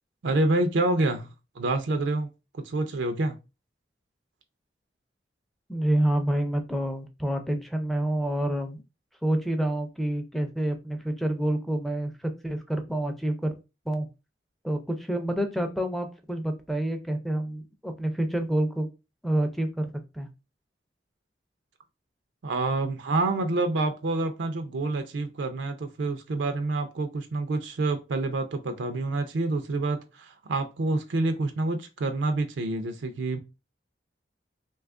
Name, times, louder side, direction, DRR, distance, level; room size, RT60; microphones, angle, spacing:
voice 1, 0.2-2.3 2.5-3.4 22.4-33.4, right 2 dB, 85° right, 0.5 m, -27 dB
voice 2, 5.7-8.8 9.2-12.1 12.4-13.5 13.9-14.1 14.6-18.9 19.2-19.9 20.1-20.3, right 1 dB, ahead, 0.4 m, -28 dB
2.7 x 2.4 x 3.5 m
head